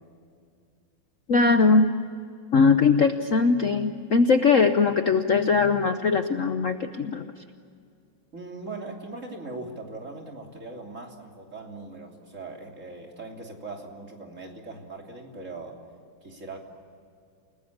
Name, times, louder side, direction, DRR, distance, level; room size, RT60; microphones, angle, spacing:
voice 1, 1.3-1.9 2.5-7.3, left 4 dB, 50° left, 8 dB, 1.0 m, -20 dB
voice 2, 8.3-15.8 16.2-16.6, right 3 dB, 35° right, 1 dB, 3.4 m, -40 dB
30.0 x 19.0 x 8.6 m, 2.4 s
omnidirectional pair, 2.2 m